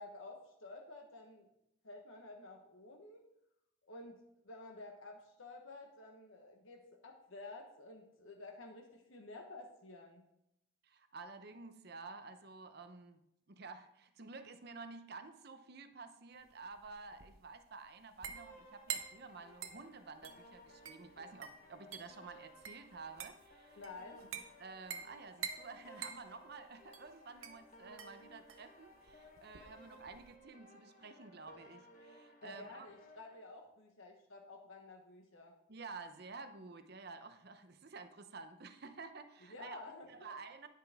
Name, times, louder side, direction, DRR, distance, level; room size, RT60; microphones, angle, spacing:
voice 1, 0.0-1.5 1.8-3.2 3.8-10.3 23.8-24.3 32.4-35.5 39.4-40.3, left 2 dB, 75° left, 2 dB, 1.3 m, -52 dB
voice 2, 10.8-13.2 13.5-23.8 24.2-24.3 24.6-32.9 35.7-39.8 40.1-40.7, right 4 dB, 50° right, 9 dB, 0.8 m, -51 dB
sound 1, 16.4-30.4, right 8 dB, 85° right, 0.9 m, -48 dB
sound 2, 18.3-33.4, left 1 dB, 40° left, 1.3 m, -60 dB
10.5 x 9.2 x 3.6 m, 0.81 s
head